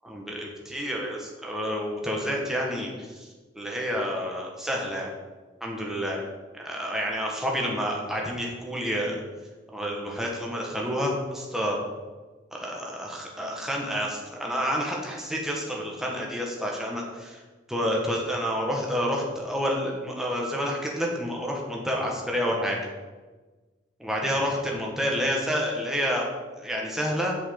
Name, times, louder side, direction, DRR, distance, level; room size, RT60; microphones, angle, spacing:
voice 1, 0.0-3.3 3.5-5.1 5.6-6.3 6.5-9.2 9.7-11.8 12.5-17.4 17.7-22.8 24.0-26.2 26.6-27.4, equal, ahead, -2 dB, 1.8 m, -29 dB
8.5 x 6.5 x 7.8 m, 1.3 s
head